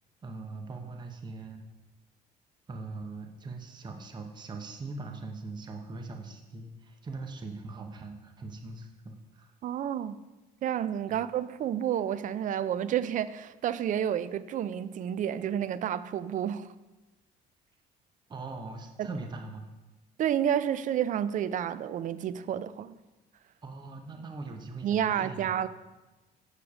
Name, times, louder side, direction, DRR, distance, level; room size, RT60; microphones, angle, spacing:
voice 1, 0.2-1.7 2.7-9.5 11.1-11.2 18.3-19.6 23.6-25.7, right 3 dB, 25° right, 4 dB, 0.8 m, -41 dB
voice 2, 9.6-10.2 10.6-16.7 19.0-19.1 20.2-22.9 24.8-25.7, right 10 dB, 50° right, 15 dB, 0.4 m, -30 dB
7.2 x 6.7 x 4.8 m, 1.1 s
cardioid pair, 110°, 17 cm